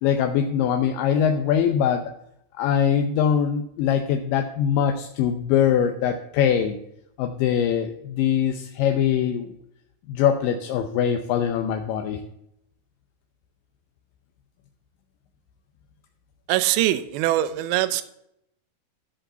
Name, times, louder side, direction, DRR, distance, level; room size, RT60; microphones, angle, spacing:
voice 1, 0.0-2.0 2.6-6.8 7.2-9.5 10.1-12.2, left 8 dB, 75° left, 5 dB, 2.2 m, -22 dB
voice 2, 16.5-18.0, right 14 dB, 85° right, 12 dB, 2.6 m, -22 dB
13.0 x 5.1 x 6.8 m, 0.76 s
omnidirectional pair, 4.4 m